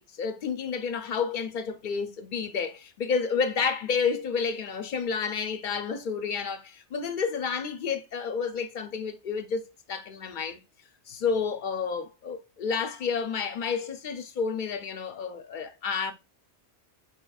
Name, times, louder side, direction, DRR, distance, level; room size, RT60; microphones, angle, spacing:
voice 1, 0.0-10.6 11.1-16.1, left 5 dB, 55° left, 0.6 m, -30 dB
4.8 x 3.1 x 2.3 m
omnidirectional pair, 1.2 m